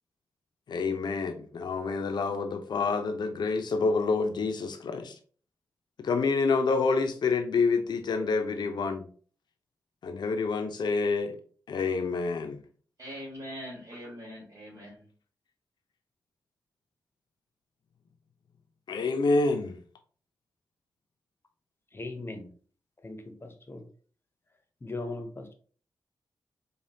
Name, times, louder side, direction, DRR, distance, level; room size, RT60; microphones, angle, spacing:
voice 1, 0.7-5.1 6.0-9.0 10.0-11.4 11.7-12.6 18.9-19.8, left 4 dB, 75° left, 0.6 m, -27 dB
voice 2, 13.0-15.1, equal, 45° right, 1.8 m, -42 dB
voice 3, 21.9-22.5 23.0-23.8 24.8-25.5, left 2 dB, 30° left, 0.9 m, -38 dB
5.0 x 2.3 x 2.8 m
cardioid pair, 60°, 8 cm